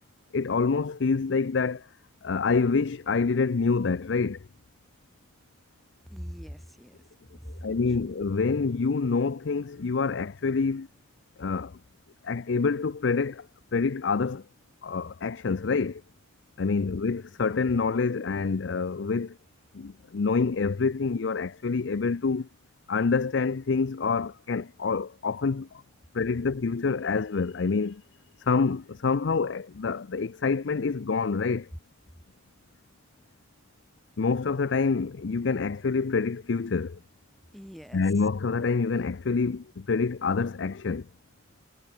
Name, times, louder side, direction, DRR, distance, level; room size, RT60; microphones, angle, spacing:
voice 1, 0.3-1.9 2.2-4.4 7.6-10.9 11.4-11.8 12.2-13.5 13.7-14.4 14.8-16.0 16.6-19.4 19.7-22.5 22.9-25.8 26.1-28.0 28.4-31.7 34.2-37.0 37.9-41.1, left 4 dB, 75° left, 0.5 m, -27 dB
voice 2, 6.0-7.0 7.3-8.0 37.5-38.1, equal, ahead, 2.1 m, -42 dB
head